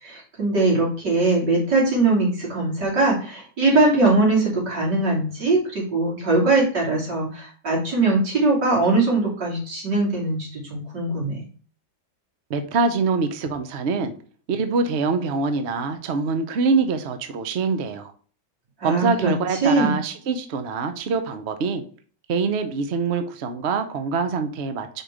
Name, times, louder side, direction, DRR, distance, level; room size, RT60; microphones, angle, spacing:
voice 1, 0.0-11.4 18.8-19.3 19.6-19.9, right 2 dB, 70° right, -4 dB, 3.6 m, -21 dB
voice 2, 12.5-14.1 14.5-18.1 18.8-21.8 22.3-25.0, right 4 dB, 55° right, 8 dB, 0.8 m, -24 dB
5.1 x 4.6 x 4.9 m, 0.41 s
omnidirectional pair, 1.9 m